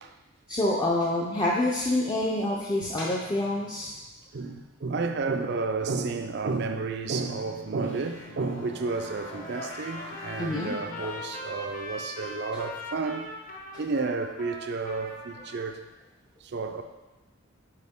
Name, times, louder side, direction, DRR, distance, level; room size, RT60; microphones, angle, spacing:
voice 1, 0.5-3.9 9.6-10.1 10.4-10.7 11.0-11.1, left 1 dB, 20° left, -4 dB, 0.5 m, -27 dB
voice 2, 4.3-13.3 13.8-15.9 16.4-16.8, right 4 dB, 60° right, 7 dB, 0.5 m, -31 dB
sound 1, 7.1-11.5, left 1 dB, 85° left, 1.1 m, -45 dB
Trumpet, 8.8-15.7, left 1 dB, 45° left, 0.8 m, -40 dB
6.6 x 5.0 x 3.6 m, 1.1 s
head